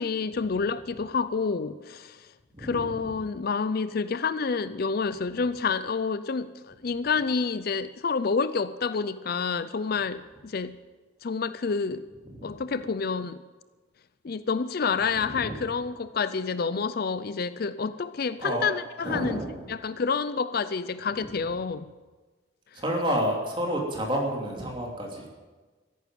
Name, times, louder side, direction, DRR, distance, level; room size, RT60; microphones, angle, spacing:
voice 1, 0.0-2.3 2.6-10.8 11.2-12.1 12.4-13.4 14.2-19.4 19.7-21.9, left 5 dB, 50° left, 0.4 m, -28 dB
voice 2, 2.5-3.0 12.3-12.5 15.2-15.6 18.4-18.6 19.0-19.6 22.7-25.4, equal, 25° right, 3.1 m, -30 dB
14.0 x 11.0 x 9.2 m
head